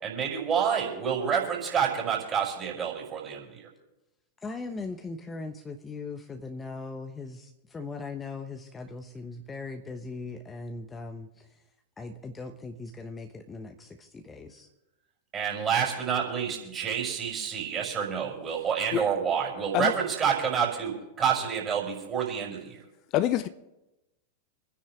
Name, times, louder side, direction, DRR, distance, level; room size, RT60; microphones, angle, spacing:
voice 1, 0.0-3.7 15.3-22.8, right 7 dB, 25° right, 5.5 m, -28 dB
voice 2, 4.4-11.6 12.0-14.7, left 3 dB, 15° left, 1.1 m, -39 dB
voice 3, 23.1-23.5, left 13 dB, 40° left, 0.6 m, -25 dB
27.0 x 10.0 x 3.7 m
figure-of-eight pair, 90°, 0 cm